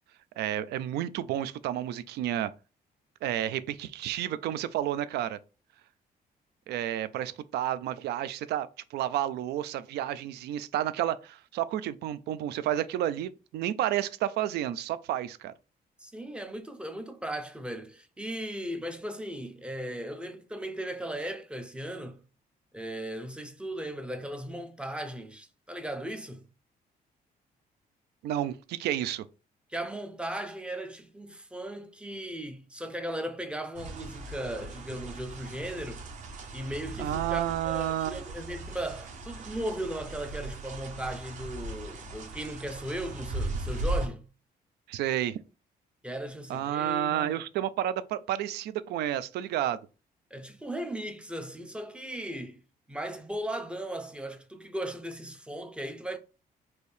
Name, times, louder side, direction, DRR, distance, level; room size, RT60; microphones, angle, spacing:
voice 1, 0.4-2.5 3.2-5.4 6.7-15.5 28.2-29.2 37.0-38.2 44.9-45.4 46.5-49.8, right 12 dB, 90° right, 0.4 m, -31 dB
voice 2, 16.0-22.2 22.7-26.5 29.7-36.1 36.5-44.3 46.0-47.4 50.3-52.6 52.9-56.2, right 1 dB, 5° right, 0.4 m, -37 dB
sound 1, 33.7-44.1, right 2 dB, 45° right, 0.8 m, -38 dB
4.5 x 2.7 x 3.2 m
cardioid pair, 160°, 16 cm